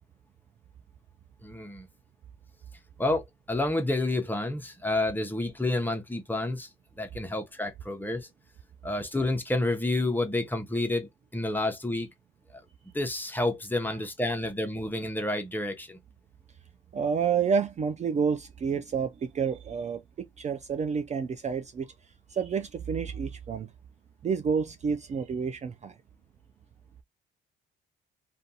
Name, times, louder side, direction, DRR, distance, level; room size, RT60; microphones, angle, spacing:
voice 1, 1.4-1.9 3.0-6.7 7.0-8.3 8.8-12.1 12.9-16.0, left 2 dB, 10° left, 0.7 m, -29 dB
voice 2, 16.9-21.9 22.3-23.7 24.2-25.9, right 6 dB, 35° right, 0.4 m, -29 dB
2.5 x 2.3 x 2.7 m
cardioid pair, 90°, 20 cm